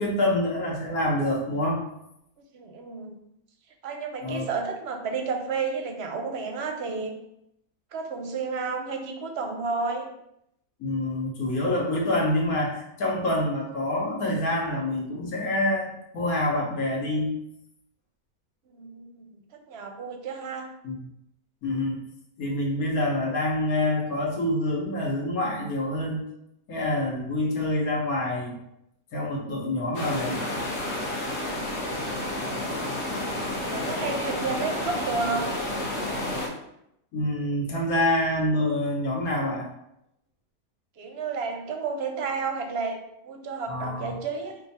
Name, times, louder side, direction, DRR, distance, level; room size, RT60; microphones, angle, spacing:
voice 1, 0.0-1.8 4.2-4.4 10.8-17.3 20.8-21.0 21.6-22.0 22.4-26.2 26.7-28.5 29.1-30.4 37.1-39.7 43.7-44.1, left 1 dB, 75° left, -2 dB, 1.5 m, -26 dB
voice 2, 2.5-3.2 3.8-7.1 7.9-10.1 18.7-19.3 19.5-20.7 33.7-35.6 41.0-43.0 43.2-44.6, right 4 dB, 60° right, 4 dB, 0.7 m, -31 dB
sound 1, 29.9-36.5, left 1 dB, 50° left, 1.3 m, -30 dB
5.4 x 2.3 x 4.1 m, 0.79 s
omnidirectional pair, 1.5 m